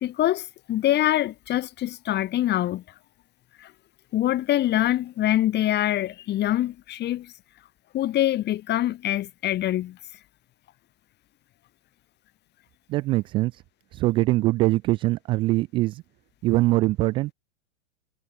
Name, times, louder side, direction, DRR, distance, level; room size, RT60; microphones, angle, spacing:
voice 1, 0.0-2.8 3.6-3.7 4.1-7.3 7.9-10.0, left 13 dB, 25° left, 3.1 m, -24 dB
voice 2, 12.9-13.6 13.9-16.0 16.4-17.3, right 18 dB, 15° right, 0.3 m, -23 dB
supercardioid pair, 145°, 38 cm